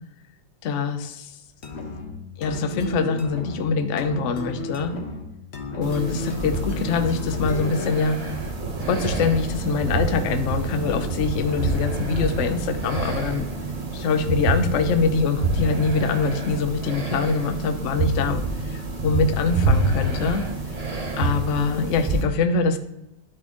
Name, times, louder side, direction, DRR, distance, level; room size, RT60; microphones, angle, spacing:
voice 1, 0.6-1.3 2.4-4.9 5.8-8.2 8.9-13.4 13.9-20.4 21.2-22.8, left 4 dB, 80° left, 8 dB, 0.6 m, -24 dB
sound 1, 1.6-8.1, left 3 dB, 45° left, 1.0 m, -33 dB
sound 2, 5.8-22.2, right 2 dB, 35° right, 0.6 m, -27 dB
sound 3, 8.6-17.9, right 5 dB, 55° right, 1.0 m, -40 dB
10.5 x 4.2 x 3.0 m, 0.91 s
omnidirectional pair, 2.2 m